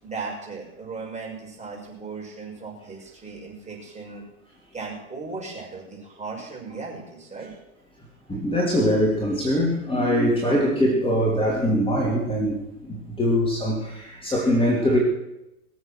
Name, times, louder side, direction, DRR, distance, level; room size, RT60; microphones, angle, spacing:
voice 1, 0.0-4.2 4.7-7.5, right 4 dB, 15° right, -2 dB, 6.5 m, -37 dB
voice 2, 8.3-15.0, equal, 10° left, -2 dB, 3.0 m, -22 dB
22.5 x 8.1 x 6.5 m, 0.90 s
hypercardioid pair, 115°, 43 cm